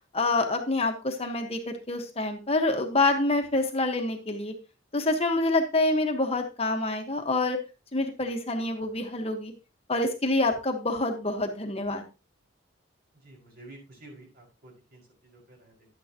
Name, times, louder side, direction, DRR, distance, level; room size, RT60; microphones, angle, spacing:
voice 1, 0.1-4.5 4.9-7.6 7.9-9.5 9.9-12.0, left 2 dB, 30° left, 4 dB, 1.3 m, -27 dB
voice 2, 13.1-15.9, right 2 dB, 50° right, -1 dB, 5.5 m, -51 dB
12.0 x 9.2 x 2.9 m, 0.29 s
head